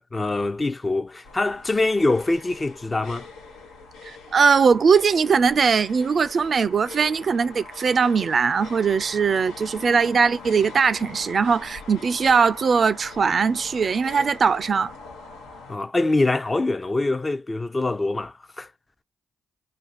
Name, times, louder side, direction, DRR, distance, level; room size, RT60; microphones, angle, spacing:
voice 1, 0.0-3.3 15.7-18.7, left 2 dB, 30° left, 0.5 m, -24 dB
sound 1, 1.2-15.8, left 3 dB, 90° left, 0.9 m, -42 dB
voice 2, 4.0-14.9, right 5 dB, 55° right, 0.4 m, -20 dB
2.6 x 2.2 x 4.0 m
hypercardioid pair, 40°, 0 cm